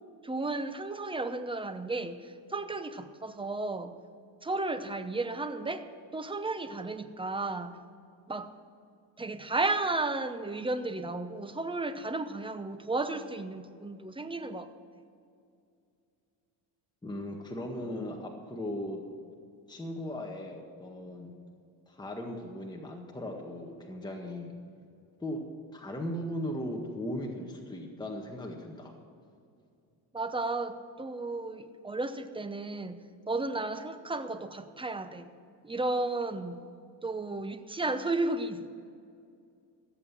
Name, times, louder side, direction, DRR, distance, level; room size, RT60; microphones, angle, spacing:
voice 1, 0.2-3.9 4.4-5.8 6.1-7.8 8.3-8.5 9.2-14.7 30.1-35.3 35.6-36.6 37.0-38.9, right 2 dB, 10° right, 10 dB, 0.9 m, -33 dB
voice 2, 17.0-19.0 19.7-21.3 21.9-24.5 25.2-25.4 25.7-28.9, left 1 dB, 10° left, 0 dB, 1.7 m, -37 dB
15.0 x 8.1 x 7.3 m, 2.4 s
cardioid pair, 95°, 47 cm